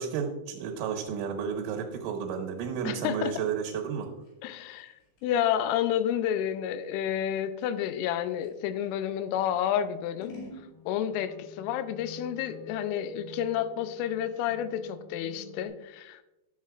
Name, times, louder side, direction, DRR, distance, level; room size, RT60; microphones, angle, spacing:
voice 1, 0.0-4.1, right 7 dB, 85° right, 2 dB, 3.4 m, -32 dB
voice 2, 2.9-3.3 4.4-4.9 5.2-10.3 10.9-16.2, left 10 dB, 90° left, 11 dB, 3.1 m, -30 dB
Scissors, 3.2-9.0 9.5-10.7, left 2 dB, 70° left, 4.3 m, -51 dB
sound 1, 10.4-15.7, equal, 55° left, 4.7 m, -46 dB
11.5 x 7.3 x 2.4 m, 0.99 s
omnidirectional pair, 5.5 m